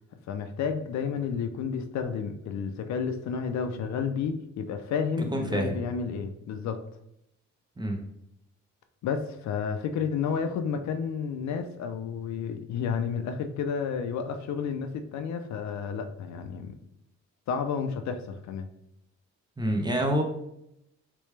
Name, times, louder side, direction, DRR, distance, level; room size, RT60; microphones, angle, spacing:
voice 1, 0.3-6.8 9.0-16.8 17.5-18.7, left 6 dB, 65° left, 7 dB, 0.5 m, -31 dB
voice 2, 5.3-5.8 7.8-8.0 19.6-20.2, right 1 dB, 15° right, 3 dB, 0.6 m, -27 dB
3.3 x 3.2 x 3.2 m, 0.78 s
cardioid pair, 90°, 30 cm